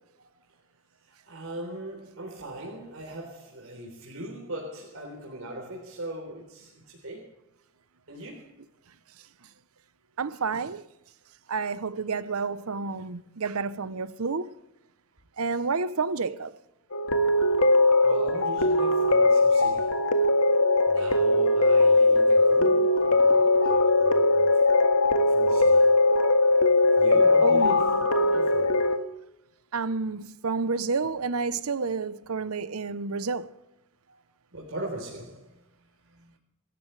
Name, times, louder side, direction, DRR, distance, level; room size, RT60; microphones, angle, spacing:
voice 1, 1.0-7.3 8.1-8.5 18.0-20.0 20.9-24.6 25.3-25.9 27.0-28.9 34.1-34.2 34.5-35.5, right 1 dB, 70° right, 3.8 m, -39 dB
voice 2, 10.2-10.8 11.5-14.5 15.4-16.5 27.4-27.8 28.2-28.3 29.7-33.5, right 4 dB, 85° right, 0.8 m, -30 dB
sound 1, 16.9-29.0, left 2 dB, 90° left, 1.8 m, -20 dB
26.5 x 14.0 x 3.3 m
head